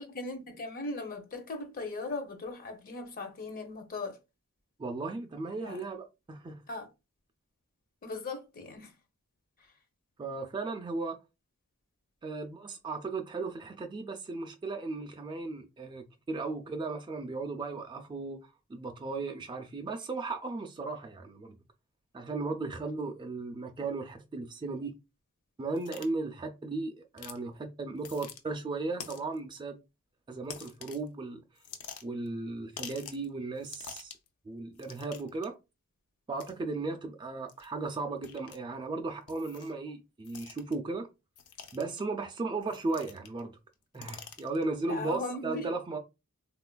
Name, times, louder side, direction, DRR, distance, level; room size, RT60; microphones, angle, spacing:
voice 1, 0.0-4.2 5.6-5.8 6.7-6.9 8.0-8.9 44.9-45.7, left 2 dB, 40° left, 0.6 m, -38 dB
voice 2, 4.8-6.6 10.2-11.2 12.2-18.4 18.7-21.6 22.1-24.9 25.6-29.8 30.3-31.4 32.0-34.1 34.4-35.5 36.3-41.1 41.7-43.6 43.9-46.0, right 3 dB, 20° right, 0.3 m, -36 dB
sound 1, 25.8-26.1 27.2-27.4 28.0-28.4 29.0-29.4 30.5-31.1 31.6-32.3 32.8-33.3 33.6-34.3 34.8-35.5 36.4-36.5 37.5-37.7 38.2-38.6 39.3-39.8 40.2-40.7 41.4-42.0 42.7-43.4 43.7-44.6, left 7 dB, 85° left, 0.5 m, -46 dB
3.6 x 2.4 x 2.2 m
head